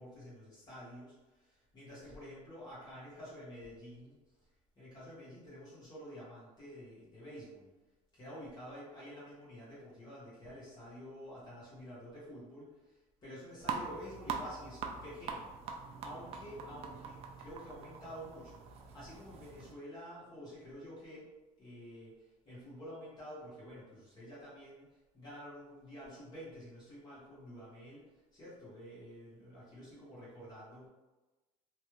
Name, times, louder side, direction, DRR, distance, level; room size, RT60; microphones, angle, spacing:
voice 1, 0.0-7.7 8.1-21.3 21.6-30.9, equal, 30° left, -9 dB, 1.2 m, -50 dB
sound 1, 13.6-19.7, right 5 dB, 45° right, 0.4 m, -43 dB
3.1 x 2.3 x 3.0 m, 1.1 s
cardioid pair, 135°, 15 cm